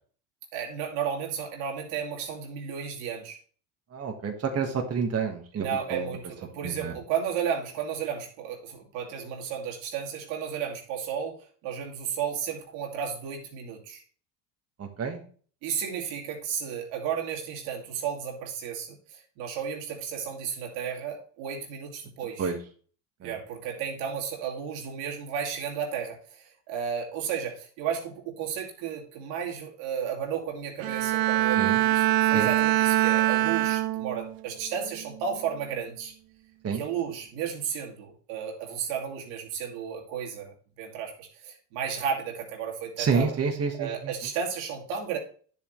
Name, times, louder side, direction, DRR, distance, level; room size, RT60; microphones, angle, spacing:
voice 1, 0.5-3.4 5.5-14.0 15.6-22.5 23.2-36.1 36.7-43.3 43.8-45.2, right 7 dB, 75° right, 0 dB, 2.7 m, -33 dB
voice 2, 3.9-6.1 6.6-6.9 14.8-15.2 22.4-22.6 23.2-23.3 31.6-31.8 32.3-32.5 36.6-36.8 43.0-44.1, right 6 dB, 30° right, 3 dB, 1.7 m, -29 dB
Bowed string instrument, 30.8-34.4 34.8-35.2, right 15 dB, 50° right, 0.6 m, -24 dB
10.0 x 7.2 x 3.3 m, 0.44 s
supercardioid pair, 90°, 46 cm